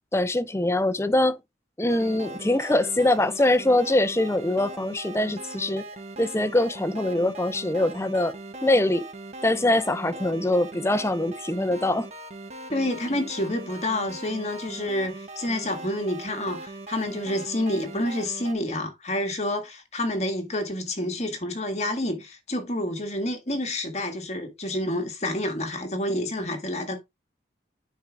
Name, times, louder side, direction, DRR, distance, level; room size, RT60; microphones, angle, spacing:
voice 1, 0.1-1.4 1.8-5.9 6.2-8.4 8.6-9.1 9.4-12.1, left 1 dB, 15° left, 0.6 m, -23 dB
sound 1, 1.9-18.5, right 2 dB, 35° right, 1.2 m, -40 dB
voice 2, 12.7-27.0, left 1 dB, 35° left, 1.8 m, -28 dB
10.0 x 4.6 x 3.5 m
head